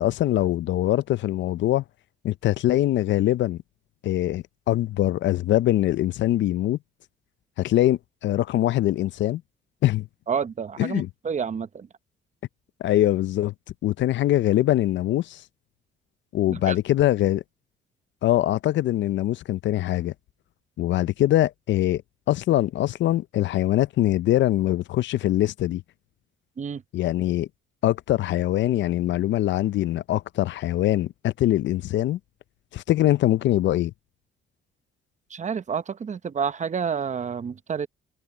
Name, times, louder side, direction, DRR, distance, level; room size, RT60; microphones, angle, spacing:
voice 1, 0.0-1.8 2.2-3.6 4.0-6.8 7.6-9.4 9.8-10.1 10.8-11.1 12.8-13.5 13.8-15.4 16.3-17.4 18.2-20.1 20.8-22.0 22.3-25.8 26.9-27.5 27.8-32.2 32.7-33.9, left 14 dB, 70° left, 0.5 m, -23 dB
voice 2, 10.3-11.9 16.5-16.8 26.6-26.8 35.3-37.9, right 6 dB, 35° right, 0.8 m, -29 dB
cardioid pair, 90°, 20 cm